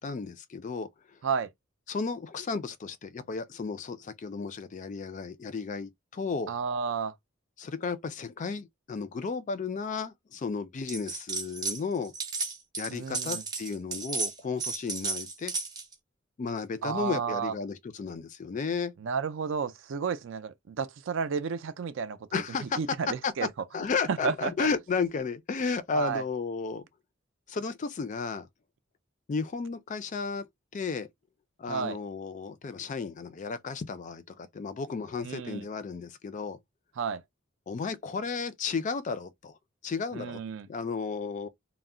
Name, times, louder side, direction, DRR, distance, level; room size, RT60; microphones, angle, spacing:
voice 1, 0.0-1.2 1.9-6.5 7.6-12.1 12.8-15.5 16.4-18.9 22.3-22.8 23.2-23.5 23.7-26.8 27.5-28.5 29.3-30.5 30.7-31.1 31.6-36.6 37.7-39.6 39.8-40.4 40.7-41.5, left 5 dB, 40° left, 0.4 m, -33 dB
voice 2, 6.5-7.1 12.9-13.4 16.8-17.5 19.0-22.4 22.8-23.5 24.1-24.7 25.9-26.2 31.7-32.0 35.2-35.7 37.0-37.2 40.1-40.7, right 5 dB, 65° right, 0.4 m, -32 dB
sound 1, 10.9-11.8 12.0-15.9, right 4 dB, 20° right, 0.6 m, -33 dB
2.3 x 2.0 x 3.6 m
head